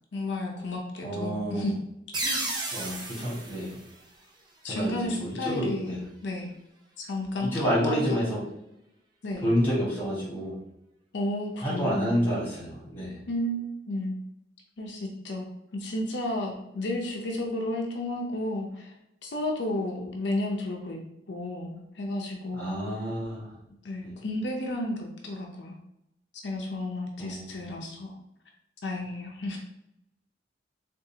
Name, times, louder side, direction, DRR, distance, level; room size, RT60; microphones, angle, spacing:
voice 1, 0.1-1.7 2.2-2.5 4.6-6.5 7.0-8.2 9.2-9.5 11.1-12.2 13.3-14.2 14.8-15.5 15.7-18.9 19.2-21.0 21.3-22.7 23.8-25.8 26.3-28.2 28.8-29.6, left 1 dB, 80° left, 0 dB, 0.6 m, -32 dB
voice 2, 1.0-1.7 2.3-2.5 2.7-3.8 4.6-6.0 7.4-8.4 9.4-10.5 11.6-13.1 22.5-23.4 24.0-24.1 27.2-27.7, equal, 10° left, -7 dB, 1.4 m, -29 dB
sound 1, 2.1-4.7, right 2 dB, 25° right, 0.5 m, -34 dB
3.7 x 2.5 x 2.7 m, 0.84 s
head